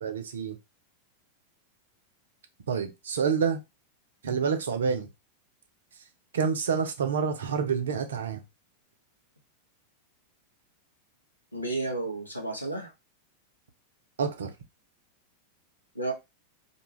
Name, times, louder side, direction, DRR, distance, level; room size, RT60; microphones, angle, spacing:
voice 1, 0.0-0.6 2.7-3.6 4.2-5.1 6.3-8.4 14.2-14.5, right 6 dB, 65° right, 0.6 m, -28 dB
voice 2, 11.5-12.9 15.9-16.1, right 2 dB, 85° left, 0.8 m, -32 dB
2.5 x 2.3 x 3.1 m
figure-of-eight pair, 90°, 0 cm